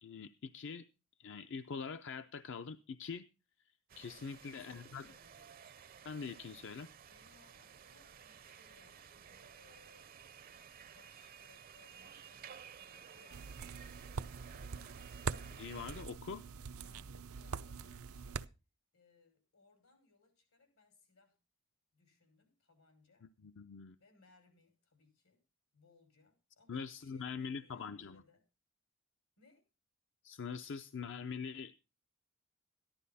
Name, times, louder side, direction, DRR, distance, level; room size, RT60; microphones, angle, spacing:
voice 1, 0.0-0.9 1.2-3.3 4.0-5.0 6.0-6.9 15.5-16.4 23.4-24.0 26.7-28.2 30.2-31.7, left 5 dB, 60° left, 10 dB, 0.6 m, -43 dB
sound 1, 3.9-16.1, right 7 dB, 45° right, 0.5 m, -55 dB
voice 2, 4.0-5.6 7.1-10.1 10.7-13.7 16.8-18.5 18.9-21.4 21.9-23.3 24.0-25.4 25.7-28.4 29.4-29.6, left 4 dB, 85° left, 5 dB, 6.0 m, -68 dB
sound 2, 13.3-18.5, right 5 dB, 90° right, 0.6 m, -43 dB
14.0 x 11.5 x 4.1 m, 0.30 s
head